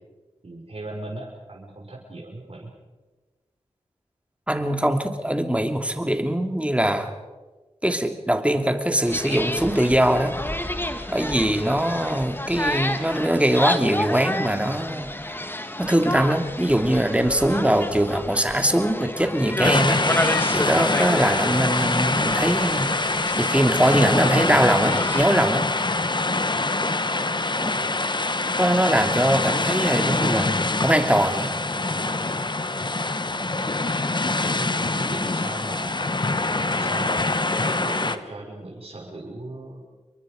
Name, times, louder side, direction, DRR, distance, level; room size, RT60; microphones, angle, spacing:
voice 1, 0.4-2.7 28.2-28.3 30.0-30.3 33.3-33.7 34.5-37.2 37.6-39.9, right 2 dB, 60° right, -2 dB, 5.9 m, -38 dB
voice 2, 4.5-7.1 7.8-10.4 11.1-15.1 15.8-25.7 27.6-27.8 28.6-30.5 30.8-31.5, right 1 dB, 10° right, 5 dB, 2.8 m, -22 dB
sound 1, 9.1-25.3, left 1 dB, 20° left, 1.9 m, -30 dB
sound 2, 19.6-38.2, left 2 dB, 40° left, 1.2 m, -24 dB
29.0 x 23.0 x 5.2 m, 1.2 s
wide cardioid pair, 45°, 11 cm